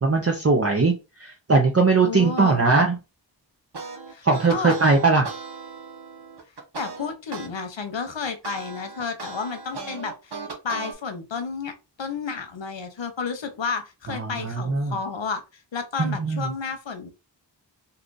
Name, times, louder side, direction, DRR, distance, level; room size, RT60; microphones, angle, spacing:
voice 1, 0.0-0.9 1.2-3.0 4.2-5.3 14.2-14.9 16.0-16.4, right 4 dB, 35° right, 0.6 m, -20 dB
voice 2, 2.0-2.6 4.1-4.8 6.8-10.4 10.6-11.7 12.0-15.4 15.7-17.1, left 5 dB, 80° left, 0.8 m, -31 dB
sound 1, 3.7-7.5 7.9-10.9, right 4 dB, 65° right, 1.0 m, -37 dB
2.8 x 2.4 x 3.8 m
wide cardioid pair, 45°, 44 cm